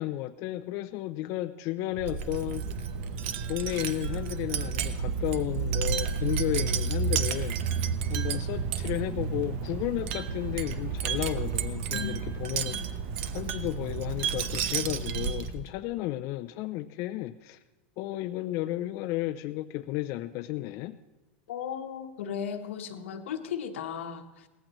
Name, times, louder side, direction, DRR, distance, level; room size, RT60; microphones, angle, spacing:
voice 1, 0.0-2.6 3.5-7.6 8.1-12.8 13.3-17.6 18.0-21.0, left 16 dB, 50° left, 9 dB, 0.4 m, -33 dB
Wind chime, 2.0-15.7, right 6 dB, 65° right, 0.9 m, -31 dB
voice 2, 21.5-24.5, left 8 dB, 90° left, 7 dB, 1.2 m, -36 dB
18.5 x 14.5 x 3.0 m, 1.1 s
supercardioid pair, 130°, 6 cm